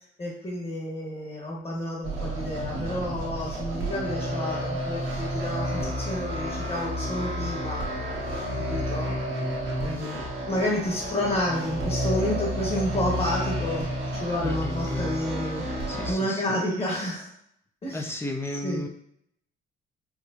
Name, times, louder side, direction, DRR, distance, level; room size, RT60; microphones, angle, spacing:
voice 1, 0.2-7.8 8.7-9.2 9.8-17.3 17.8-18.1 18.6-18.8, left 1 dB, 30° left, -3 dB, 1.5 m, -30 dB
sound 1, 2.0-16.1, equal, 80° right, 1.1 m, -30 dB
voice 2, 9.9-10.3 14.4-15.1 15.9-16.6 17.9-18.9, left 2 dB, 10° left, 3 dB, 0.5 m, -35 dB
4.5 x 2.2 x 2.8 m, 0.70 s
cardioid pair, 90°, 20 cm